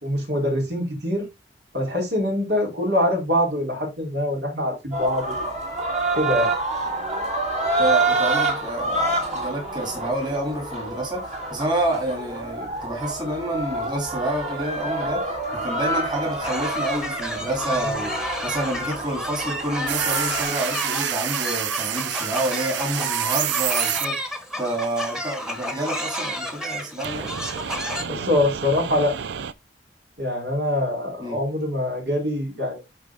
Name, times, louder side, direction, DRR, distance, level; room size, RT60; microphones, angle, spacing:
voice 1, 0.0-1.3 1.7-5.4 6.1-6.5 17.8-17.9 28.0-29.2 30.2-32.8, left 1 dB, 65° right, 3.5 m, -24 dB
sound 1, 4.9-20.4, right 2 dB, 45° right, 3.2 m, -27 dB
voice 2, 7.8-18.2 18.4-24.2 24.6-27.3 31.2-31.4, right 1 dB, 25° right, 2.9 m, -28 dB
sound 2, 16.4-28.0, equal, 5° right, 1.4 m, -31 dB
sound 3, 19.9-24.0 27.0-29.5, right 11 dB, 85° right, 0.5 m, -28 dB
11.0 x 3.9 x 3.6 m
head